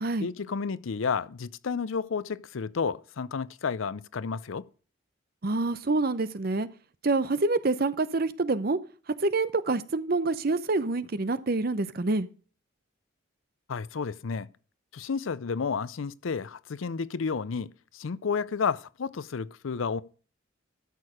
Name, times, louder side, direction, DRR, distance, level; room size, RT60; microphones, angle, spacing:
voice 1, 0.2-4.6 13.7-14.5 14.9-17.7 17.9-20.0, left 5 dB, 80° left, 0.5 m, -31 dB
voice 2, 5.4-6.7 7.0-8.8 9.2-12.3, right 3 dB, 50° right, 0.7 m, -27 dB
13.0 x 6.5 x 5.0 m
head